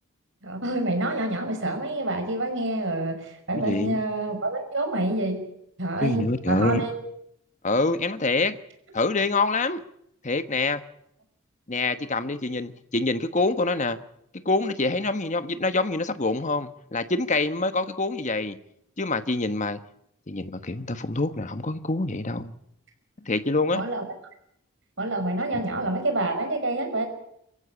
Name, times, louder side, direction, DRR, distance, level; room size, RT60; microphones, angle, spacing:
voice 1, 0.4-5.4 5.8-7.0 23.7-24.0 25.0-27.1, right 1 dB, 60° right, 6 dB, 5.5 m, -27 dB
voice 2, 3.6-4.0 6.0-6.8 7.6-8.6 8.9-9.8 10.2-10.8 11.7-14.0 14.4-18.6 19.0-19.8 20.3-22.5 23.3-23.8, left 3 dB, 35° left, 11 dB, 1.2 m, -26 dB
25.0 x 15.0 x 8.7 m, 0.75 s
head